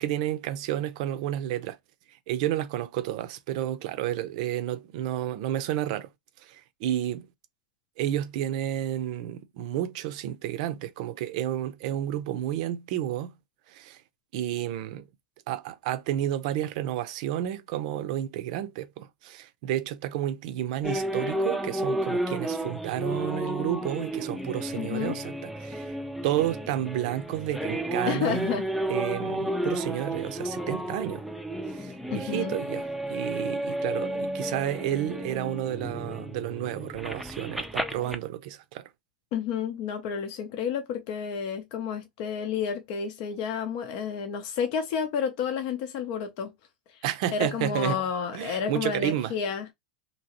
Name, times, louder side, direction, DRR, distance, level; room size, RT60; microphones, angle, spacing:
voice 1, 0.0-1.8 2.3-6.1 6.4-7.3 8.0-13.3 13.7-14.0 14.3-15.1 15.5-26.0 26.2-28.6 28.9-31.2 31.7-38.9 47.0-48.0 48.3-49.3, right 12 dB, 60° right, 0.5 m, -31 dB
sound 1, 20.8-38.2, right 1 dB, ahead, 0.4 m, -32 dB
voice 2, 24.8-25.1 28.1-28.6 32.1-32.5 39.3-46.5 47.3-49.7, left 7 dB, 55° left, 0.6 m, -30 dB
2.9 x 2.8 x 2.9 m
hypercardioid pair, 110°, 4 cm